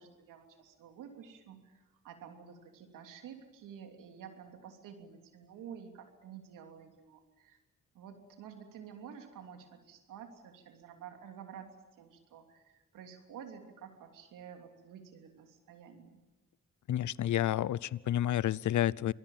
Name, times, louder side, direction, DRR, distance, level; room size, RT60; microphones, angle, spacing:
voice 1, 0.0-7.6 7.9-11.7 12.0-16.2, right 8 dB, 90° right, 5 dB, 3.0 m, -50 dB
voice 2, 16.9-19.1, left 12 dB, 70° left, 23 dB, 0.7 m, -30 dB
27.0 x 20.0 x 7.4 m, 1.2 s
supercardioid pair, 45°, 31 cm